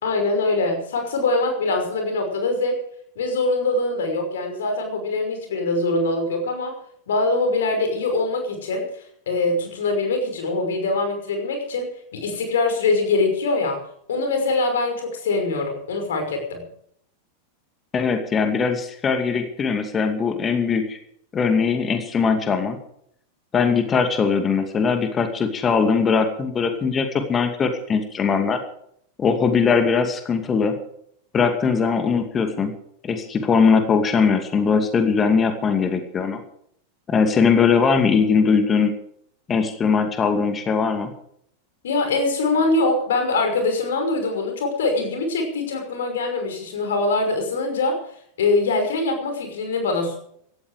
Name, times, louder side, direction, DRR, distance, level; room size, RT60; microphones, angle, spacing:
voice 1, 0.0-2.8 3.2-6.8 7.1-13.8 14.1-16.7 41.8-48.0 48.4-50.1, left 3 dB, 60° left, 5 dB, 5.8 m, -23 dB
voice 2, 17.9-21.0 21.3-22.8 23.5-28.6 29.2-30.7 31.3-32.7 33.0-36.4 37.1-38.9 39.5-41.1, left 5 dB, 20° left, 7 dB, 2.4 m, -20 dB
17.0 x 14.0 x 5.1 m, 0.67 s
figure-of-eight pair, 90°, 0 cm